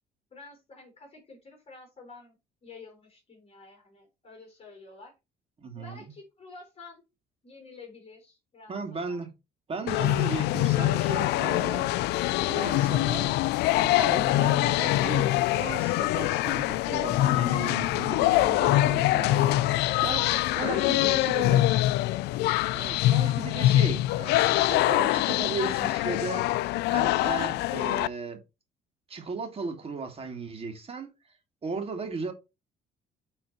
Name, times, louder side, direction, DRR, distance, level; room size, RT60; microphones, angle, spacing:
voice 1, 0.3-5.1 5.7-7.0 7.4-9.2, left 3 dB, 35° left, 3.6 m, -49 dB
voice 2, 5.6-6.1 8.7-9.3 9.7-11.9 12.4-13.4 13.7-19.5 20.0-20.2 20.6-21.7 22.7-26.5 26.9-28.4 29.1-31.1 31.6-32.3, right 4 dB, 35° right, 2.3 m, -36 dB
sound 1, 9.9-28.1, left 16 dB, 85° left, 0.4 m, -24 dB
9.0 x 3.9 x 4.2 m
cardioid pair, 110°, 17 cm